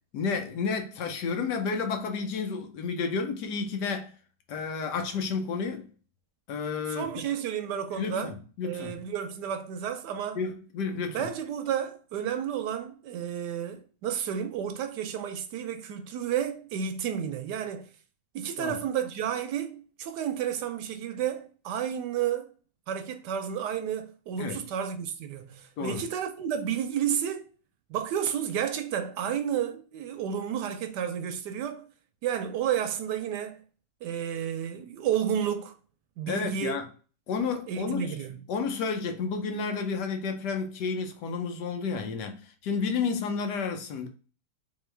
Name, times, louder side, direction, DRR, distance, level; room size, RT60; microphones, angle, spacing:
voice 1, 0.1-4.1 4.5-5.9 6.5-7.1 7.9-9.0 10.4-11.3 18.6-18.8 24.4-24.6 25.8-26.0 36.3-36.9 37.3-38.2 38.5-44.1, left 5 dB, 70° left, 1.2 m, -31 dB
voice 2, 6.9-8.3 8.6-10.4 11.1-17.9 18.3-22.5 22.9-27.4 27.9-31.8 32.2-33.6 34.0-35.8 36.2-36.8 37.7-38.4, right 9 dB, 75° right, 1.1 m, -31 dB
3.6 x 3.1 x 3.2 m
omnidirectional pair, 1.9 m